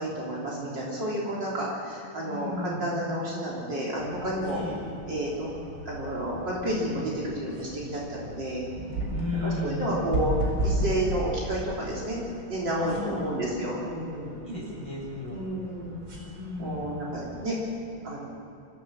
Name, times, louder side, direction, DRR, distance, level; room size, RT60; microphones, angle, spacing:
voice 1, 0.0-4.6 5.1-5.5 5.8-8.7 9.4-12.2 12.5-14.3 15.3-16.0 16.6-17.6 18.0-18.3, right 1 dB, 65° right, -5 dB, 4.2 m, -31 dB
voice 2, 2.3-2.9 4.5-4.8 9.1-9.9 12.8-13.4 14.5-15.4 16.4-16.9, left 2 dB, 10° right, -4 dB, 6.6 m, -34 dB
sound 1, 4.0-17.6, right 1 dB, 85° right, 5.6 m, -36 dB
25.5 x 16.0 x 7.7 m, 2.7 s
omnidirectional pair, 2.1 m